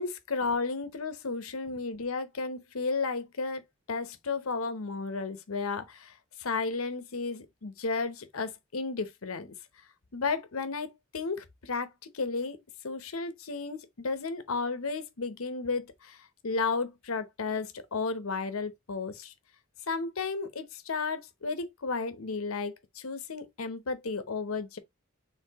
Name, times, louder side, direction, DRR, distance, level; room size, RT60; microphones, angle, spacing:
voice 1, 0.0-3.6 3.9-9.5 10.1-12.6 12.8-19.3 19.9-24.8, left 4 dB, 90° left, 0.9 m, -33 dB
4.7 x 3.3 x 3.4 m
head